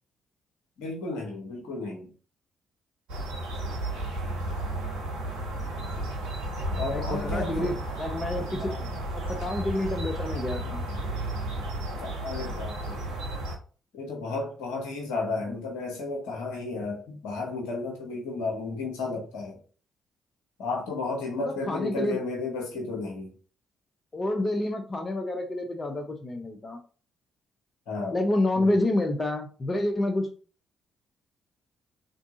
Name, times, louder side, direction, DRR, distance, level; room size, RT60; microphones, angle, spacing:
voice 1, 0.8-2.1 6.7-7.8 8.6-8.9 12.0-13.0 13.9-19.6 20.6-23.3 27.9-28.2 28.5-28.7, left 3 dB, 70° left, 0 dB, 1.0 m, -33 dB
sound 1, 3.1-13.6, right 1 dB, 70° right, 0.7 m, -33 dB
voice 2, 6.8-8.7 9.1-10.9 15.5-15.6 21.4-22.2 24.1-26.8 28.1-30.3, left 1 dB, 30° left, 4 dB, 0.6 m, -28 dB
3.5 x 2.6 x 3.6 m, 0.39 s
figure-of-eight pair, 40°, 0 cm